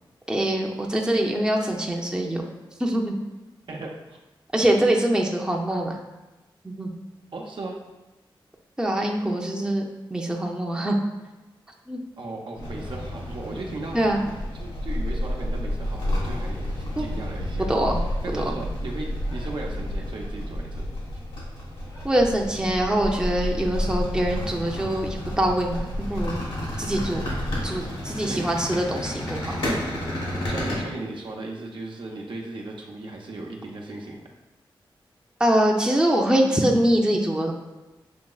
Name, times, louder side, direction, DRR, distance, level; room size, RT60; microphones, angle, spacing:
voice 1, 0.3-2.4 2.8-3.2 4.5-6.0 6.6-6.9 8.8-11.0 11.9-12.0 13.9-14.2 17.0-17.1 17.6-18.0 18.3-18.5 22.0-26.4 26.8-27.2 27.6-29.6 35.4-37.5, right 1 dB, 10° right, 0 dB, 0.6 m, -24 dB
voice 2, 3.7-4.2 7.3-7.8 12.2-14.3 14.6-17.7 18.0-20.8 27.3-27.5 28.2-28.5 30.4-34.2, right 2 dB, 65° right, -1 dB, 0.7 m, -36 dB
sound 1, 12.6-30.8, left 1 dB, 85° left, 1.3 m, -30 dB
6.2 x 2.9 x 2.3 m, 1.1 s
cardioid pair, 60°, 9 cm